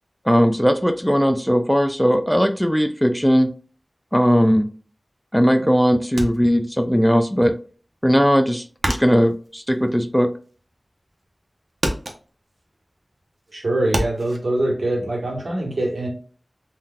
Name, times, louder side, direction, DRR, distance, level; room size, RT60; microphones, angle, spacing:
voice 1, 0.3-3.5 4.1-4.7 5.3-7.6 8.0-10.3, equal, ahead, 0.3 m, -18 dB
sound 1, 6.2-7.2 7.5-10.8 11.1-11.5 11.8-14.4, right 1 dB, 55° right, 0.7 m, -29 dB
voice 2, 13.5-16.1, right 1 dB, 75° right, 1.3 m, -23 dB
3.7 x 2.7 x 2.2 m
wide cardioid pair, 50°, 0 cm